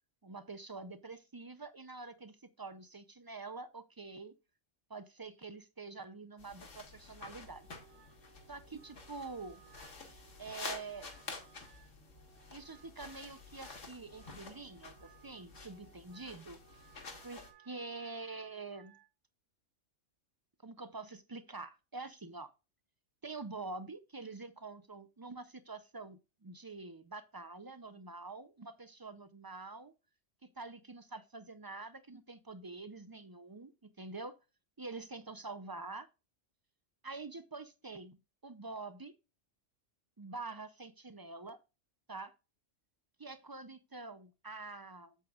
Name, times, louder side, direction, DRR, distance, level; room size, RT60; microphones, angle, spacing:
voice 1, 0.2-4.3 4.9-7.6 8.5-9.6 10.4-11.1 12.5-16.8 17.2-19.0 20.6-22.5 23.2-29.9 30.6-34.4 34.8-36.1 37.0-38.2 38.4-39.1 40.2-41.6 42.1-42.3 43.2-45.2, right 3 dB, 35° right, 0.3 m, -46 dB
sound 1, 6.4-17.5, left 4 dB, 75° left, 1.9 m, -50 dB
Wind instrument woodwind instrument, 7.4-19.1, right 10 dB, 70° right, 1.1 m, -63 dB
8.2 x 7.8 x 2.4 m
omnidirectional pair, 1.3 m